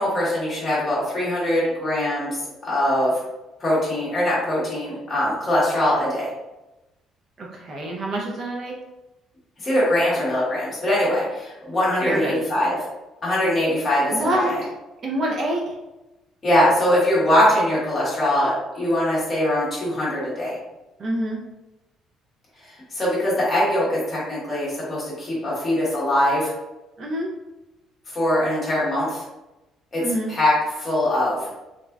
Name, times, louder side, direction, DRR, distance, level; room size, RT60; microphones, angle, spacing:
voice 1, 0.0-3.1 3.6-6.3 9.6-12.8 13.2-14.4 16.4-20.6 22.9-26.5 28.1-29.2 29.9-30.0 30.3-31.5, left 1 dB, 20° left, -8 dB, 1.4 m, -22 dB
voice 2, 7.4-8.7 12.0-12.4 14.1-14.7 15.0-15.7 21.0-21.4 27.0-27.3 30.0-30.3, right 1 dB, 40° right, -1 dB, 0.5 m, -26 dB
3.6 x 3.1 x 2.3 m, 1.0 s
cardioid pair, 165°, 0 cm